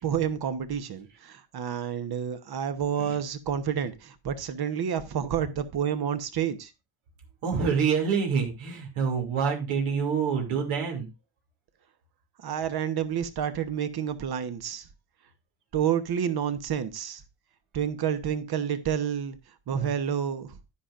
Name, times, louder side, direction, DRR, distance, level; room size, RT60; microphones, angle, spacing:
voice 1, 0.0-6.7 12.4-14.8 15.7-17.2 17.7-19.4 19.7-20.5, right 8 dB, 50° right, 1.1 m, -29 dB
voice 2, 7.4-11.1, right 6 dB, 80° right, 2.7 m, -26 dB
10.0 x 10.0 x 2.5 m
cardioid pair, 120°, 50 cm